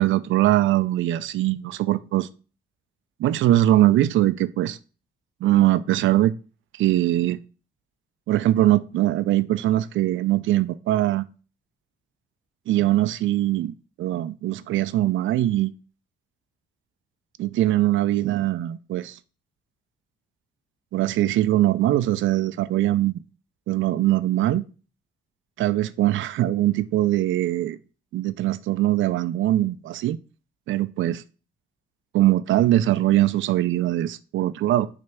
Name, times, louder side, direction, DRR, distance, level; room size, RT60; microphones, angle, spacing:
voice 1, 0.0-2.3 3.2-4.8 5.4-6.3 6.8-7.4 8.3-11.3 12.7-15.7 17.4-19.2 20.9-23.2 23.7-24.6 25.6-27.8 28.1-30.2 30.7-31.2 32.1-34.9, right 14 dB, 75° right, 0.5 m, -21 dB
6.3 x 3.4 x 6.0 m
cardioid pair, 90°, 20 cm